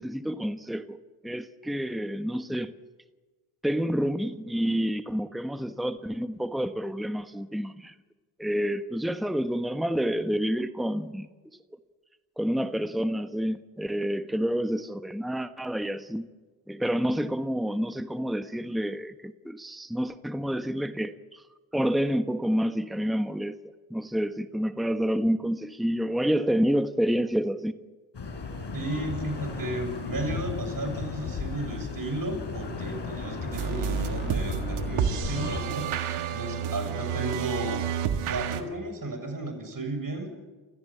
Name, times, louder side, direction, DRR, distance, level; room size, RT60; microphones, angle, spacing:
voice 1, 0.0-2.7 3.6-7.9 8.4-11.3 12.4-16.3 16.7-21.4 21.7-23.6 23.9-27.7, equal, ahead, 1.3 m, -28 dB
sound 1, 28.1-35.6, left 4 dB, 55° left, 5.0 m, -35 dB
voice 2, 28.7-35.9 36.3-37.9 38.3-40.3, right 1 dB, 40° right, 7.1 m, -34 dB
sound 2, 33.5-38.6, right 8 dB, 80° right, 1.8 m, -30 dB
30.0 x 15.0 x 8.6 m
supercardioid pair, 45°, 49 cm